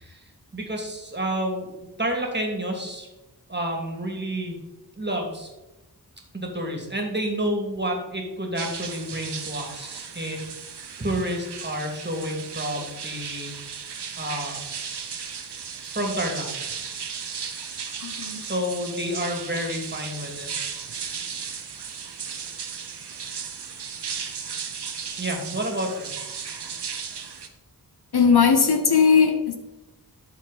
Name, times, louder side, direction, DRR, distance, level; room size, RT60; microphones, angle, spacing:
voice 1, 0.0-1.7 2.0-3.1 3.5-4.6 4.9-5.5 6.3-13.5 14.2-14.6 15.9-16.5 18.4-20.5 25.2-26.1, equal, 25° right, 1 dB, 2.3 m, -29 dB
sound 1, 8.6-27.5, right 6 dB, 85° right, 0.8 m, -35 dB
voice 2, 18.0-18.4 28.1-29.6, left 6 dB, 70° left, 6 dB, 1.1 m, -18 dB
12.5 x 4.6 x 4.0 m, 1.0 s
wide cardioid pair, 45°, 40 cm